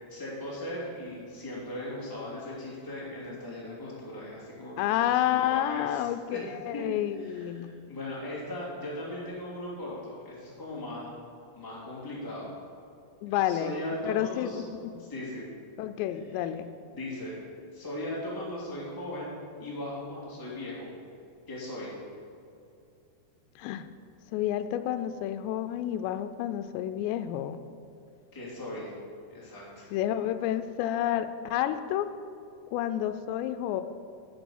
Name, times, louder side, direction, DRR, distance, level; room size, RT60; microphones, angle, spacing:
voice 1, 0.1-5.1 5.5-6.4 6.7-6.8 7.2-11.1 11.5-12.5 13.2-14.6 15.0-15.5 16.3-16.5 16.9-17.3 17.7-19.3 19.6-20.9 21.5-21.9 28.3-28.9 29.3-29.9, left 1 dB, 10° left, -6 dB, 1.3 m, -38 dB
voice 2, 4.8-7.7 13.2-13.7 14.0-15.1 15.8-16.7 23.6-23.9 24.3-27.6 29.9-32.1 32.7-33.8, left 11 dB, 90° left, 10 dB, 2.8 m, -30 dB
10.5 x 6.3 x 7.1 m, 2.5 s
omnidirectional pair, 5.0 m